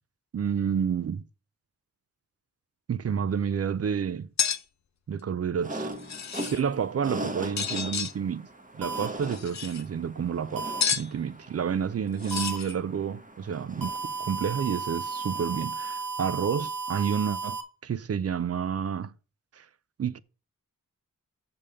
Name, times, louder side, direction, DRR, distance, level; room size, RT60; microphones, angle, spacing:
voice 1, 0.3-1.2 2.9-4.3 5.1-5.9 6.4-8.5 8.7-13.9 14.3-19.1 19.5-19.7 20.0-20.2, right 7 dB, 45° right, 0.5 m, -30 dB
sound 1, 4.4-4.6 5.9-6.6 7.6-8.1 9.2-9.8 10.8-11.1 12.2-12.7, left 7 dB, 55° left, 0.7 m, -30 dB
sound 2, 5.6-15.9, right 1 dB, 25° right, 1.2 m, -40 dB
sound 3, 8.8-9.1 10.6-10.8 12.3-12.6 13.8-17.6, right 4 dB, 75° right, 1.2 m, -34 dB
6.9 x 5.3 x 6.6 m
wide cardioid pair, 140°, 33 cm